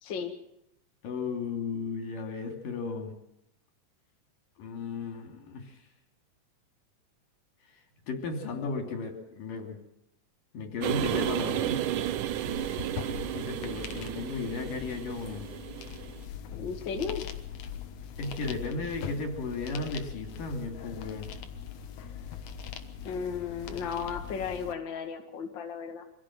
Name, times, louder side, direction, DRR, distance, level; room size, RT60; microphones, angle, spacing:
voice 1, 0.0-0.3 16.6-17.3 23.0-26.0, left 6 dB, 40° left, 4 dB, 2.3 m, -34 dB
voice 2, 1.0-3.1 4.6-5.8 8.1-9.8 10.5-11.8 13.3-15.5 18.2-21.3, left 3 dB, 80° left, 4 dB, 4.7 m, -35 dB
sound 1, 10.8-16.2, right 12 dB, 75° right, 2.4 m, -33 dB
sound 2, 12.3-24.7, left 8 dB, 65° left, 2.6 m, -41 dB
25.0 x 16.5 x 7.5 m, 0.83 s
omnidirectional pair, 3.8 m